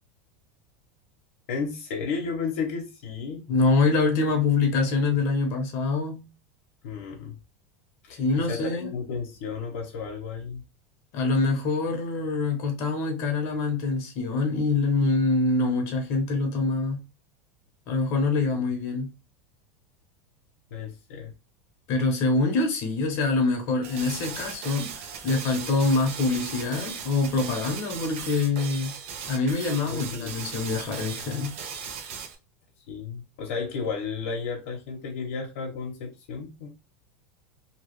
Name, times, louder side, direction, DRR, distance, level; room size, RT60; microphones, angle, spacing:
voice 1, 1.5-3.4 6.8-7.3 8.1-10.6 20.7-21.3 29.9-30.4 32.9-36.7, left 5 dB, 80° left, 0.9 m, -33 dB
voice 2, 3.5-6.2 8.2-8.9 11.1-17.0 17.9-19.1 21.9-28.9 29.3-31.5, left 3 dB, 45° left, 0.9 m, -25 dB
sound 1, 23.8-32.4, right 6 dB, 65° right, 0.7 m, -38 dB
2.9 x 2.4 x 3.1 m
supercardioid pair, 165°, 7 cm